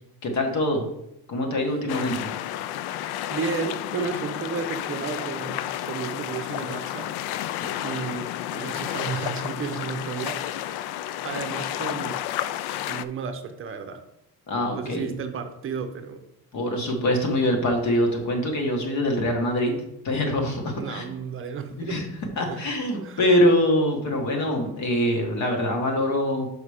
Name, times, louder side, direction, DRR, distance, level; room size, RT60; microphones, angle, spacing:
voice 1, 0.2-0.8 1.3-2.3 14.5-15.1 16.5-21.1 21.9-22.0 22.4-26.5, left 1 dB, 45° left, 2 dB, 1.3 m, -24 dB
sound 1, 1.9-13.0, left 12 dB, 80° left, 0.5 m, -31 dB
voice 2, 3.3-7.5 7.8-10.9 11.2-12.3 12.8-14.0 14.7-16.2 20.7-22.0 22.5-22.6 23.0-23.4, right 5 dB, 35° right, 7 dB, 0.7 m, -33 dB
5.8 x 5.0 x 4.9 m, 0.82 s
cardioid pair, 175°, 38 cm